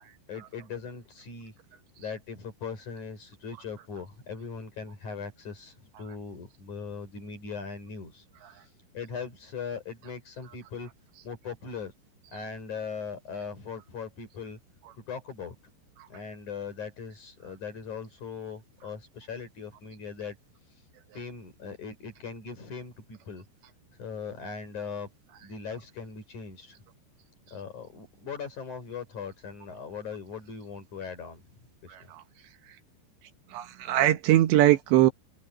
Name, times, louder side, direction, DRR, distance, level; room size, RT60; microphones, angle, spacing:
voice 1, 0.3-1.5 2.0-8.2 8.9-10.9 11.2-11.9 12.3-14.6 15.0-15.5 16.1-20.4 21.1-23.4 24.0-25.1 25.4-26.8 27.5-32.1, left 5 dB, 40° left, 6.4 m, -39 dB
voice 2, 31.9-32.2 33.5-35.1, right 14 dB, 75° right, 3.3 m, -22 dB
open air
omnidirectional pair, 5.3 m